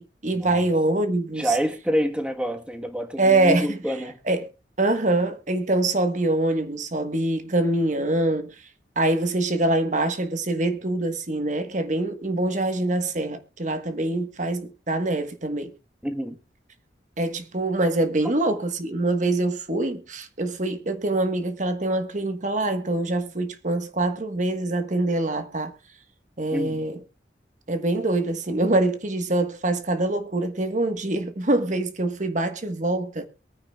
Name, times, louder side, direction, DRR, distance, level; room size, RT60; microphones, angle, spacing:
voice 1, 0.0-1.6 3.2-4.0 4.2-4.5 4.8-8.7 9.0-15.7 17.2-25.7 26.4-27.0 27.7-33.3, right 2 dB, 45° right, 1.4 m, -24 dB
voice 2, 1.4-4.2 16.0-16.4 26.5-26.8, equal, 5° right, 1.3 m, -27 dB
22.5 x 9.8 x 2.4 m
head